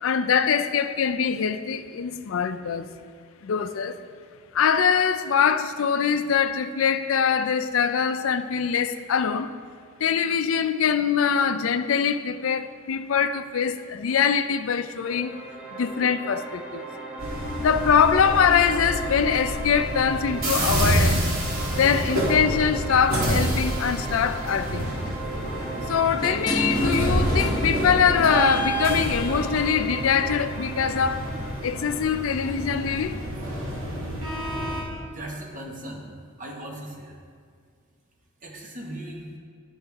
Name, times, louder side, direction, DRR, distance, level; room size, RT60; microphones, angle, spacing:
voice 1, 0.0-2.9 3.4-4.0 4.5-9.5 10.0-15.3 15.7-16.8 17.6-21.3 21.8-24.9 25.9-31.2 31.6-33.2, left 7 dB, 75° left, 0.4 m, -23 dB
sound 1, 15.0-32.0, right 3 dB, 5° right, 0.8 m, -37 dB
sound 2, 17.2-34.8, equal, 75° right, 1.7 m, -28 dB
sound 3, 24.1-24.3 24.7-29.8, right 1 dB, 20° left, 0.9 m, -30 dB
voice 2, 35.1-36.1 36.4-37.2 38.4-39.3, right 1 dB, 40° right, 1.3 m, -38 dB
10.5 x 6.3 x 3.5 m
head